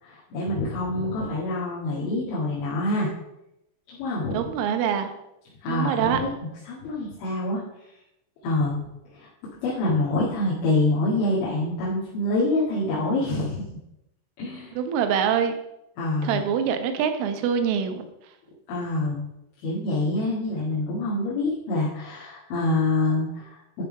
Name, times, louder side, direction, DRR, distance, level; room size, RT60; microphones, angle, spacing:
voice 1, 0.0-3.1 3.9-4.5 5.6-6.3 6.7-7.6 8.4-8.8 9.1-9.3 9.6-13.6 14.4-14.8 16.0-16.5 18.7-19.2 19.6-23.8, left 2 dB, 70° left, -8 dB, 4.4 m, -26 dB
voice 2, 4.3-5.1 5.7-6.2 14.8-15.6 16.2-18.0, right 8 dB, 80° right, 7 dB, 3.5 m, -24 dB
12.0 x 5.8 x 5.2 m, 0.85 s
omnidirectional pair, 5.7 m